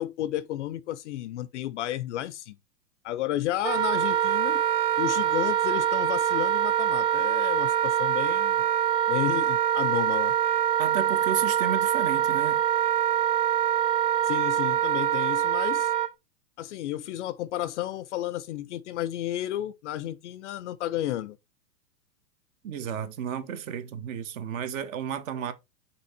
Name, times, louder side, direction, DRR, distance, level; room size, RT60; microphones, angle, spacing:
voice 1, 0.0-2.6 3.0-4.6 5.0-8.7 9.1-10.3 14.2-15.9 16.6-21.4, left 13 dB, 45° left, 0.5 m, -32 dB
Wind instrument woodwind instrument, 3.6-16.1, right 10 dB, 70° right, 1.0 m, -24 dB
voice 2, 10.8-12.6 22.6-25.5, right 8 dB, 50° right, 1.3 m, -32 dB
5.9 x 4.2 x 4.1 m
hypercardioid pair, 130°, 50 cm